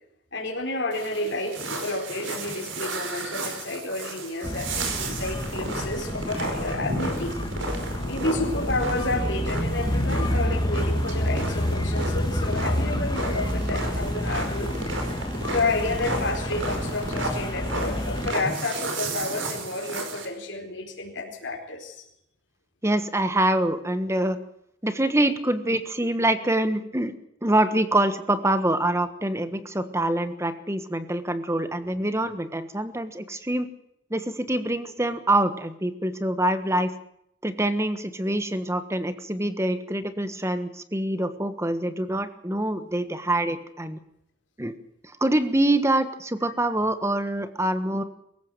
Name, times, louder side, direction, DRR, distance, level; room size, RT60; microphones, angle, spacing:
voice 1, 0.3-7.4 8.0-14.7 15.5-22.0 46.4-46.5, left 2 dB, 65° left, 0 dB, 4.6 m, -30 dB
sound 1, 0.9-20.3, right 2 dB, 80° right, 5.2 m, -33 dB
sound 2, 4.4-18.3, equal, 20° left, 1.9 m, -29 dB
voice 2, 22.8-24.4 24.8-27.1 27.4-33.7 34.1-36.9 37.4-44.0 44.6-44.7 45.2-48.0, right 1 dB, 15° right, 11 dB, 1.4 m, -25 dB
23.5 x 15.0 x 7.9 m, 0.76 s
head